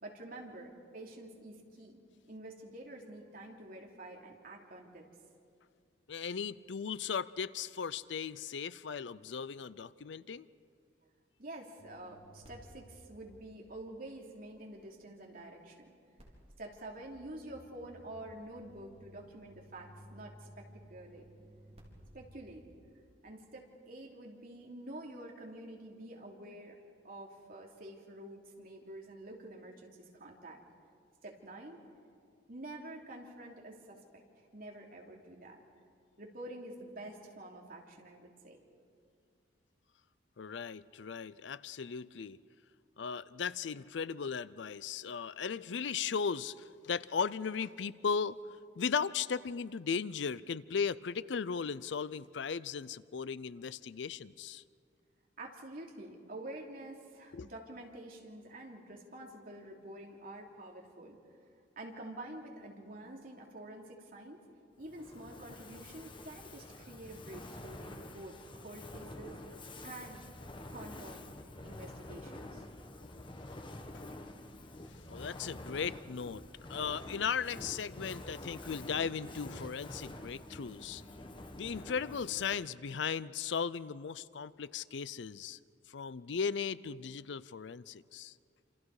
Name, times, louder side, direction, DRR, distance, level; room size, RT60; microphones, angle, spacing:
voice 1, 0.0-2.0 2.3-5.1 11.4-16.0 16.6-21.3 22.1-22.6 23.2-26.8 27.0-30.6 31.2-31.8 32.5-35.6 36.2-38.6 55.4-61.2 61.8-64.4 64.8-69.4 69.8-71.3 71.6-72.7, right 1 dB, 50° right, 0 dB, 3.1 m, -48 dB
voice 2, 6.1-10.5 40.4-42.4 43.0-48.4 48.8-54.6 57.3-57.5 73.1-73.5 75.1-76.4 76.7-81.0 81.6-85.6 85.9-88.3, left 6 dB, 75° left, 18 dB, 0.5 m, -37 dB
sound 1, 11.8-15.0 16.2-23.1, equal, 35° right, 4.3 m, -57 dB
Fire, 64.8-82.8, left 1 dB, 25° left, 1.2 m, -48 dB
28.0 x 27.5 x 4.9 m, 2.3 s
head